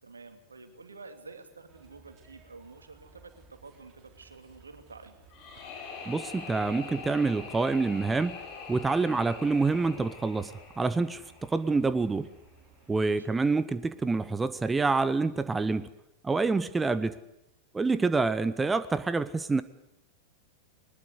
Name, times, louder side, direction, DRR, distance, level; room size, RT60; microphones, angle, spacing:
voice 1, 0.0-5.2 13.0-13.3 17.9-18.1, right 4 dB, 75° right, 7 dB, 2.7 m, -49 dB
sound 1, 1.7-13.2, right 4 dB, 30° right, 6.3 m, -58 dB
sound 2, 5.3-12.3, left 4 dB, 40° left, 7.0 m, -44 dB
voice 2, 6.1-8.4 8.7-12.3 12.9-15.9 16.2-17.2 17.7-19.6, right 3 dB, 10° right, 15 dB, 0.8 m, -27 dB
21.5 x 20.5 x 8.2 m, 0.83 s
figure-of-eight pair, 90°, 0 cm